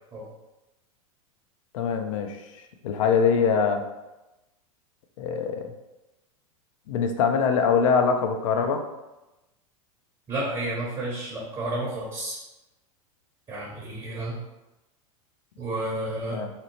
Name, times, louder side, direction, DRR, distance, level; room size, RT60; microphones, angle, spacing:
voice 1, 1.7-2.4 2.8-3.8 5.2-5.7 6.9-8.8 16.3-16.5, left 6 dB, 70° left, 6 dB, 0.4 m, -23 dB
voice 2, 10.3-12.4 13.5-14.4 15.6-16.4, right 1 dB, 25° right, -5 dB, 0.8 m, -31 dB
2.8 x 2.0 x 2.9 m, 1.0 s
hypercardioid pair, 100°, 18 cm